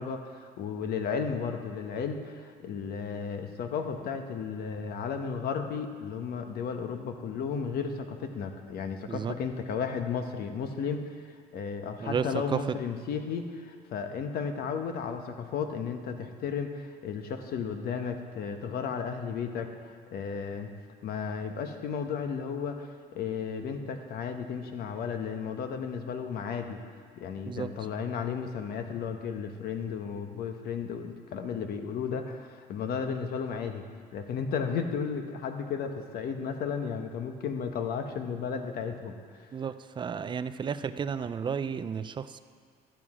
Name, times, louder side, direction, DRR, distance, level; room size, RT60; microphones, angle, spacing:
voice 1, 0.0-20.7 21.0-26.8 27.2-33.8 34.1-39.2, left 6 dB, 65° left, 6 dB, 1.0 m, -34 dB
voice 2, 12.0-12.6 27.5-27.7 39.5-42.4, right 6 dB, 30° right, 12 dB, 0.4 m, -32 dB
12.0 x 7.5 x 4.9 m, 2.1 s
cardioid pair, 110°, 17 cm